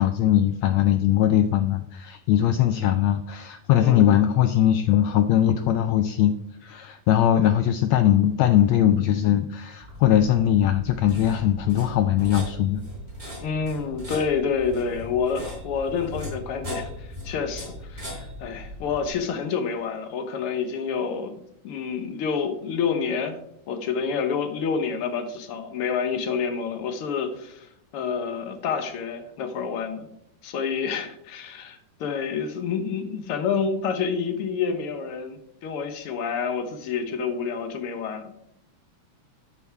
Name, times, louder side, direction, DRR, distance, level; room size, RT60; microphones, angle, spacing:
voice 1, 0.0-6.3 6.6-12.8 13.3-13.4, left 11 dB, 85° left, 9 dB, 1.5 m, -20 dB
voice 2, 3.8-4.1 13.4-21.3 21.6-23.4 23.7-30.1 30.4-38.3, left 6 dB, 65° left, 7 dB, 1.5 m, -28 dB
sound 1, 9.8-19.1, left 1 dB, 15° right, 4.1 m, -38 dB
12.5 x 5.9 x 4.7 m, 0.78 s
omnidirectional pair, 3.6 m